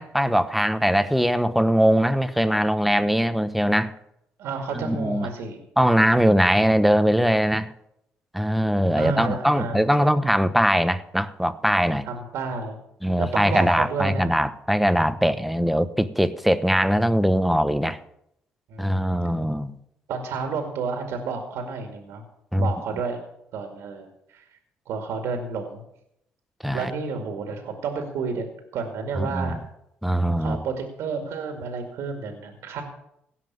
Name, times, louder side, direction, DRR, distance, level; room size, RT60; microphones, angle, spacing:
voice 1, 0.0-3.9 4.7-5.3 5.8-7.7 8.3-12.1 13.0-18.0 18.8-19.7 22.5-22.7 26.6-26.9 29.2-29.6 30.0-30.6, equal, ahead, 12 dB, 1.0 m, -21 dB
voice 2, 4.4-5.6 8.9-10.1 12.0-12.8 13.2-14.3 18.7-19.1 20.1-22.2 22.5-23.2 23.5-24.5 24.9-25.8 26.7-28.4 28.7-29.6 30.4-32.8, right 5 dB, 80° right, 4 dB, 2.2 m, -31 dB
17.0 x 5.8 x 9.6 m, 0.79 s
cardioid pair, 85°, 4 cm